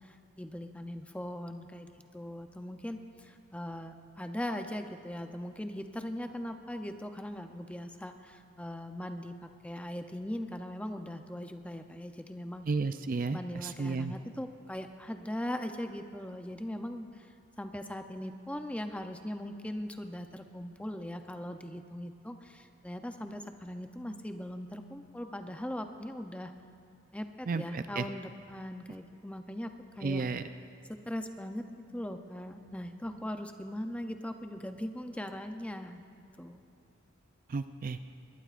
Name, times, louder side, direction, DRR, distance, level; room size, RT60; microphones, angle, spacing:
voice 1, 0.0-12.7 13.3-26.5 27.1-30.2 30.9-31.6 31.9-36.0 36.4-36.6, left 1 dB, 5° left, 6 dB, 0.6 m, -40 dB
voice 2, 12.7-14.1 27.5-28.0 30.0-30.4 37.5-38.0, right 4 dB, 40° right, 10 dB, 0.4 m, -32 dB
21.5 x 20.0 x 2.5 m, 2.4 s
head